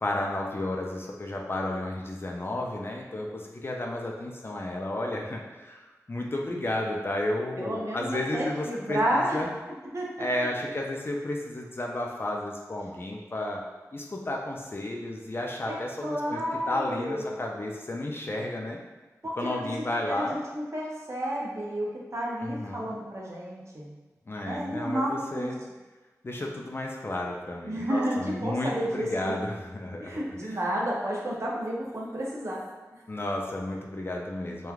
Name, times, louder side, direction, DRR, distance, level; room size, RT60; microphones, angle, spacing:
voice 1, 0.0-9.5 10.2-13.6 13.9-16.4 16.7-18.8 19.4-20.4 22.4-22.9 24.3-25.6 26.2-30.6 33.1-34.7, left 1 dB, 40° left, 0 dB, 0.4 m, -32 dB
voice 2, 7.6-9.4 9.9-10.1 15.7-15.8 16.0-17.4 19.2-23.9 24.4-25.5 27.7-29.3 30.0-32.6, equal, 50° right, -4 dB, 0.6 m, -31 dB
3.1 x 2.2 x 2.3 m, 1.2 s
wide cardioid pair, 75°, 6 cm